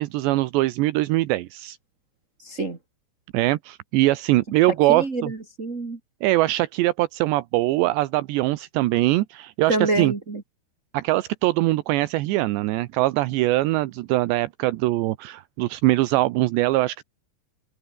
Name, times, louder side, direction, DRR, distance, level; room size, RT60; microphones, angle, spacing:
voice 1, 0.0-1.8 3.3-5.3 6.2-10.1 10.9-17.0, right 18 dB, 80° right, 3.1 m, -22 dB
voice 2, 2.4-2.8 4.9-6.0 9.7-10.4, right 2 dB, 40° right, 1.0 m, -27 dB
omnidirectional pair, 5.1 m